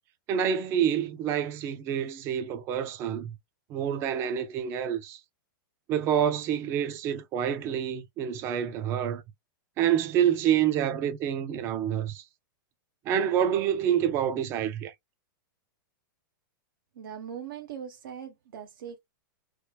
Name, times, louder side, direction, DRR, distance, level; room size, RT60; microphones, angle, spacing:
voice 1, 0.3-3.3 3.7-5.2 5.9-9.2 9.8-12.2 13.1-14.9, right 9 dB, 20° right, 0.4 m, -27 dB
voice 2, 17.0-19.0, right 8 dB, 70° right, 0.7 m, -40 dB
3.1 x 2.2 x 3.3 m
supercardioid pair, 165°, 11 cm